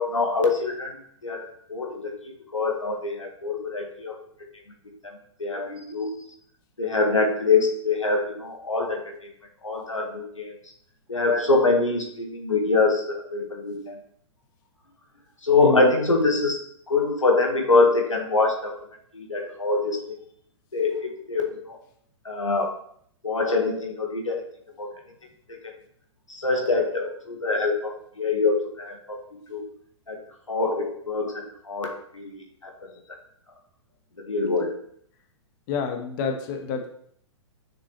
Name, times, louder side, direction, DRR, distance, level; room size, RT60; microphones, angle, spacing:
voice 1, 0.0-4.2 5.0-6.1 6.8-9.3 9.6-10.5 11.1-14.0 15.4-16.6 16.9-18.8 19.1-20.2 20.7-21.8 22.2-22.7 23.2-24.4 24.8-24.9 25.5-25.7 26.3-29.6 30.1-30.2 30.5-32.9 34.2-34.7, left 3 dB, 90° left, 2 dB, 1.5 m, -25 dB
voice 2, 15.6-15.9 35.7-36.9, left 5 dB, 40° left, 4 dB, 1.3 m, -28 dB
6.8 x 5.9 x 3.1 m, 0.66 s
figure-of-eight pair, 115°, 16 cm